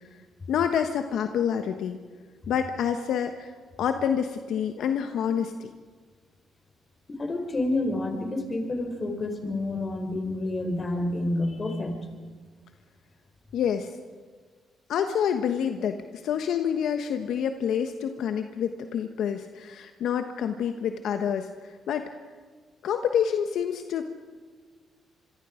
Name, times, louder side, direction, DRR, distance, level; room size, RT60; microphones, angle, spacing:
voice 1, 0.5-2.0 2.5-3.5 3.8-5.5 13.5-13.9 14.9-16.0 16.2-21.5 21.9-22.1 22.8-24.0, left 8 dB, 75° left, 7 dB, 1.2 m, -27 dB
voice 2, 7.1-12.0, left 2 dB, 30° left, 5 dB, 4.1 m, -29 dB
26.0 x 23.0 x 5.1 m, 1.5 s
cardioid pair, 90°, 0 cm